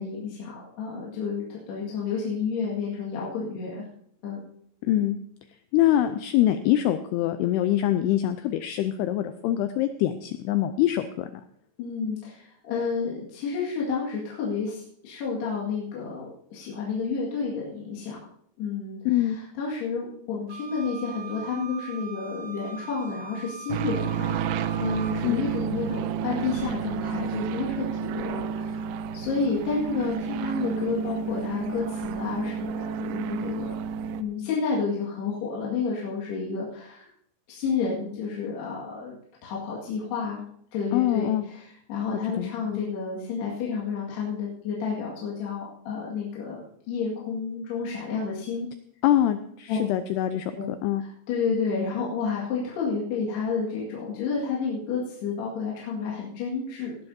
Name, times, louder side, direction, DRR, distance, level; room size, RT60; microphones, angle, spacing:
voice 1, 0.0-3.8 4.2-4.4 11.8-18.2 18.6-24.4 24.7-28.9 29.1-33.7 34.2-37.1 37.5-39.2 39.4-40.4 40.7-48.7 49.7-49.8 50.6-50.7 51.0-57.0, left 5 dB, 65° left, -5 dB, 3.9 m, -30 dB
voice 2, 4.8-5.2 5.7-11.3 19.1-19.4 25.2-25.4 40.9-41.4 42.4-42.8 49.0-50.5 50.8-51.0, left 12 dB, 85° left, 9 dB, 2.3 m, -24 dB
Wind instrument woodwind instrument, 20.5-25.2, right 5 dB, 65° right, 0.7 m, -41 dB
sound 1, 23.7-34.2, right 7 dB, 85° right, 2.3 m, -31 dB
19.0 x 11.5 x 2.7 m, 0.67 s
omnidirectional pair, 5.3 m